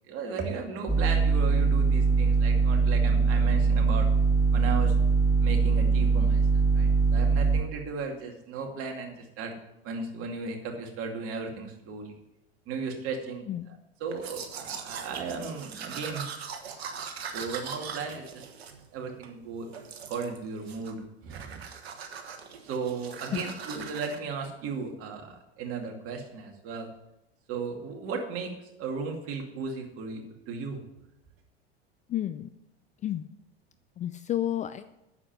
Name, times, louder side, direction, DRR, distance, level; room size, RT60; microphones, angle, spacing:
voice 1, 0.1-4.1 4.5-4.9 5.4-6.4 6.7-9.5 9.8-12.1 12.7-16.2 17.2-18.5 18.9-21.6 22.6-26.9 27.5-28.5 28.8-30.2 30.5-30.8, right 5 dB, 45° right, 2 dB, 2.5 m, -36 dB
sound 1, 0.9-7.6, right 4 dB, 10° right, 1.6 m, -22 dB
Domestic sounds home sounds, 14.1-19.3 19.7-20.4 20.7-21.0 21.3-24.2, right 6 dB, 70° right, 1.5 m, -41 dB
voice 2, 32.1-32.5 33.0-33.3 34.0-34.8, left 12 dB, 25° left, 11 dB, 0.4 m, -30 dB
9.7 x 7.5 x 7.6 m, 0.87 s
figure-of-eight pair, 85°, 32 cm